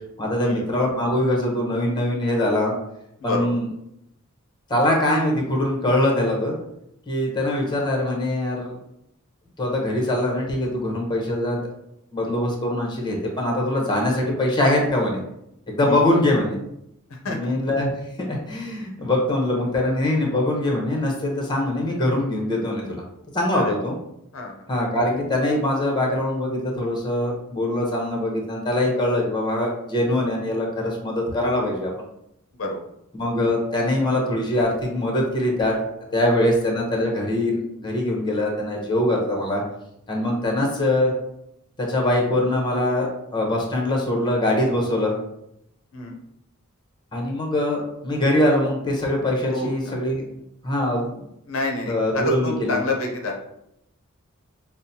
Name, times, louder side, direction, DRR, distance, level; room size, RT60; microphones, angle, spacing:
voice 1, 0.2-2.7 3.2-3.7 4.7-6.6 7.1-8.7 9.6-11.6 12.1-15.2 15.7-16.6 17.3-17.9 18.2-23.0 23.3-24.0 24.7-31.9 33.1-35.8 36.1-39.6 40.1-41.1 41.8-45.1 47.1-50.3 50.6-51.3 51.8-52.8, left 1 dB, 20° left, 0 dB, 0.8 m, -23 dB
voice 2, 17.1-17.5 23.5-23.8 24.3-24.5 32.6-32.8 45.9-46.1 49.5-49.7 51.5-53.3, left 2 dB, 65° left, 1 dB, 0.6 m, -28 dB
5.5 x 2.0 x 2.7 m, 0.80 s
head